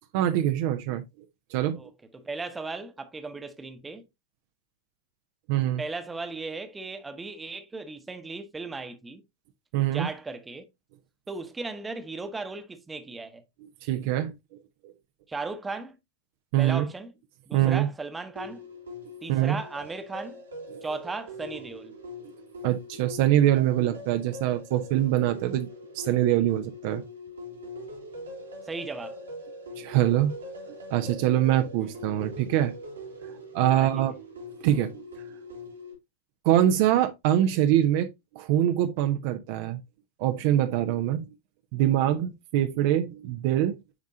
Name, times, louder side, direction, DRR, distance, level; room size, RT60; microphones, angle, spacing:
voice 1, 0.1-1.0 1.5-1.8 5.5-5.8 9.7-10.1 13.6-14.3 14.8-14.9 16.5-16.9 17.5-17.9 19.3-19.6 20.7-20.8 22.6-25.7 25.9-27.0 29.8-30.3 30.9-32.7 33.3-34.1 34.6-35.0 36.4-38.1 38.3-39.8 40.2-41.3 41.7-43.8, right 12 dB, 50° right, 0.7 m, -24 dB
voice 2, 1.8-4.0 5.8-9.2 9.8-10.6 11.3-13.4 15.3-15.9 16.6-17.1 17.5-18.6 19.2-20.4 20.8-21.9 28.6-29.2 31.8-31.9 33.7-34.0, right 3 dB, 10° right, 1.1 m, -36 dB
sound 1, 18.4-35.9, left 1 dB, 75° right, 1.9 m, -42 dB
9.7 x 3.6 x 2.7 m
figure-of-eight pair, 90°, 0 cm